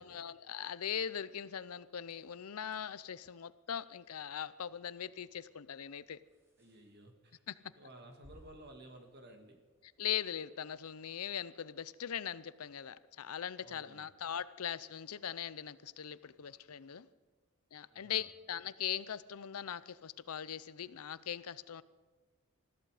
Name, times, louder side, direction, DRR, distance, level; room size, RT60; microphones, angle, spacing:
voice 1, 0.0-6.2 7.5-7.6 10.0-17.1 17.7-21.8, left 9 dB, 85° left, 17 dB, 0.6 m, -40 dB
sound 1, 1.9-10.2, equal, 10° right, 2.7 m, -68 dB
voice 2, 6.6-7.4 7.8-9.6 13.6-14.1 17.9-18.3, right 1 dB, 45° right, 5 dB, 2.0 m, -55 dB
20.5 x 14.0 x 4.9 m, 1.3 s
head